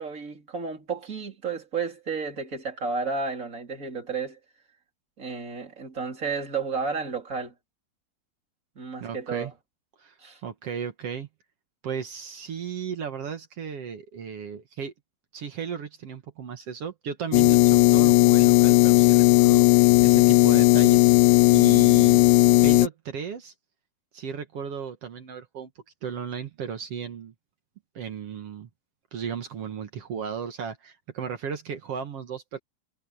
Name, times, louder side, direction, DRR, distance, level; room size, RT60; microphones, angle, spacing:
voice 1, 0.0-4.4 5.2-7.5 8.8-9.5 10.2-10.4, right 5 dB, 20° right, 3.7 m, -32 dB
voice 2, 9.0-9.5 10.0-10.1 10.4-11.3 11.8-14.9 15.3-22.3 22.6-23.5 24.1-25.7 26.0-27.3 28.0-28.7 29.1-32.6, right 7 dB, 55° right, 1.9 m, -35 dB
sound 1, 17.3-22.9, left 20 dB, 80° left, 2.2 m, -16 dB
omnidirectional pair, 4.4 m